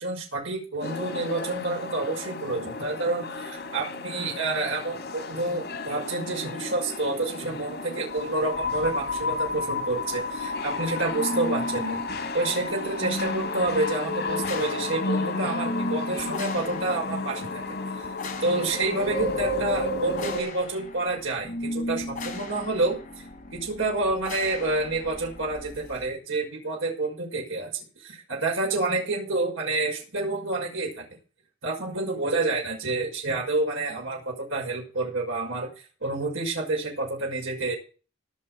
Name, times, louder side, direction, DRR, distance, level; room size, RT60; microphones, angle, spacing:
voice 1, 0.0-12.1 12.3-17.6 18.4-23.0 23.5-31.0 31.6-35.7 36.0-37.7, right 2 dB, 85° right, 0 dB, 6.0 m, -28 dB
sound 1, 0.8-20.4, left 3 dB, 60° left, 3.7 m, -32 dB
sound 2, 10.2-26.1, left 1 dB, 40° left, 4.8 m, -38 dB
18.5 x 6.7 x 6.2 m, 0.37 s
head